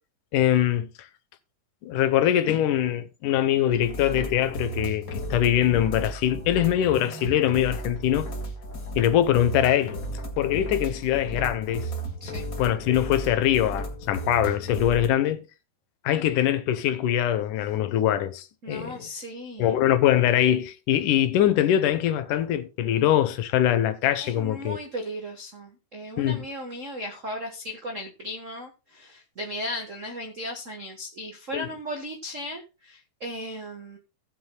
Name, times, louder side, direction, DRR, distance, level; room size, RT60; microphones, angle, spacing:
voice 1, 0.3-0.9 1.8-8.3 9.0-10.0 10.4-11.9 12.6-15.4 16.0-19.1 19.6-24.8 26.2-26.4 31.5-31.7, left 11 dB, 85° left, 2.4 m, -23 dB
sound 1, 3.7-15.1, right 1 dB, 40° left, 1.5 m, -34 dB
voice 2, 18.6-19.8 24.2-34.0, equal, 75° right, 0.7 m, -36 dB
18.0 x 7.7 x 2.2 m
omnidirectional pair, 3.6 m